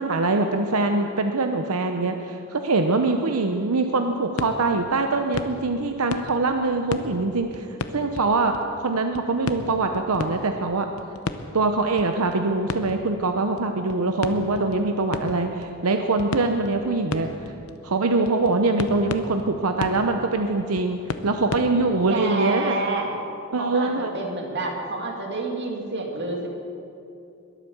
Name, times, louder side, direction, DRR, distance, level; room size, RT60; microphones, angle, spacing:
voice 1, 0.0-7.7 7.9-10.9 11.5-17.3 17.8-22.8 23.5-24.1, right 3 dB, 90° right, 5 dB, 0.8 m, -23 dB
sound 1, 4.1-8.8 9.1-21.6, left 3 dB, 75° left, 0.8 m, -35 dB
voice 2, 22.1-23.1 23.6-26.5, right 2 dB, 55° right, 1 dB, 2.3 m, -28 dB
21.5 x 8.4 x 7.0 m, 2.7 s
head